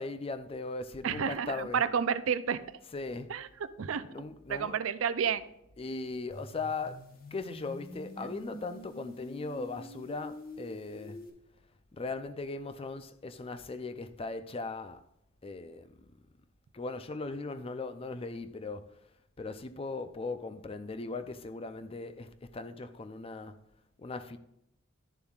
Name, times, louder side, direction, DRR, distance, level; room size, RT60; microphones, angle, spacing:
voice 1, 0.0-1.8 2.9-3.3 4.1-4.8 5.8-11.2 11.9-15.0 15.4-16.2 16.7-19.0 19.4-23.6 24.0-24.4, left 3 dB, 30° left, 0.4 m, -39 dB
voice 2, 1.0-2.6 3.3-3.4 3.8-4.1 4.5-5.4, right 7 dB, 75° right, 0.5 m, -30 dB
sound 1, 6.3-11.3, left 1 dB, 45° left, 1.2 m, -47 dB
11.0 x 7.0 x 2.4 m
head